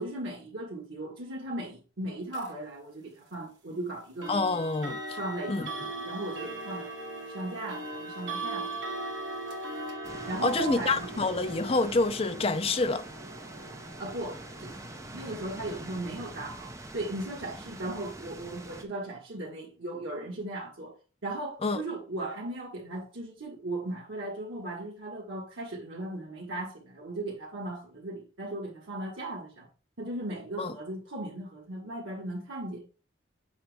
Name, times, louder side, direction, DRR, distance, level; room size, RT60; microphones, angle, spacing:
voice 1, 0.0-4.6 5.1-6.9 7.3-8.8 10.3-11.1 14.0-14.8 15.1-20.9 21.2-29.7 30.0-32.9, right 2 dB, 90° right, 1.5 m, -37 dB
sound 1, 2.3-2.5 4.2-17.0, right 2 dB, 70° right, 1.6 m, -40 dB
voice 2, 4.3-5.2 5.5-5.7 10.4-13.0 21.6-21.8 30.6-30.7, left 3 dB, 30° left, 0.5 m, -27 dB
sound 2, 10.0-18.8, right 2 dB, 15° right, 0.7 m, -44 dB
7.2 x 5.1 x 3.4 m
head